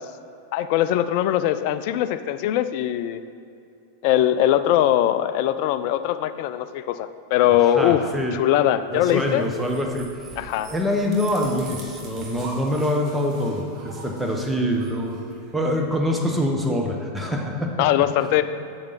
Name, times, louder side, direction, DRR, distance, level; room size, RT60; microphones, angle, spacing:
voice 1, 0.5-3.2 4.0-9.4 10.4-10.7 17.8-18.4, left 12 dB, 45° left, 12 dB, 0.4 m, -21 dB
voice 2, 7.5-8.4 8.9-10.1 10.7-15.2 15.5-17.9, left 1 dB, 5° right, 1 dB, 1.1 m, -25 dB
sound 1, 8.9-15.9, right 3 dB, 30° right, 1.5 m, -43 dB
8.5 x 8.0 x 4.1 m, 2.6 s
figure-of-eight pair, 90°, 0 cm